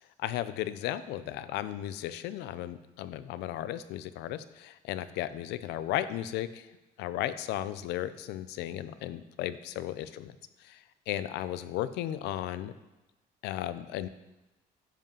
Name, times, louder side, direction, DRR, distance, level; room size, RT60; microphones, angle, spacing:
voice 1, 0.2-6.7 7.0-10.3 10.6-12.7 13.4-14.1, left 12 dB, 85° left, 14 dB, 0.5 m, -35 dB
10.0 x 5.5 x 5.4 m, 1.0 s
cardioid pair, 110°, 17 cm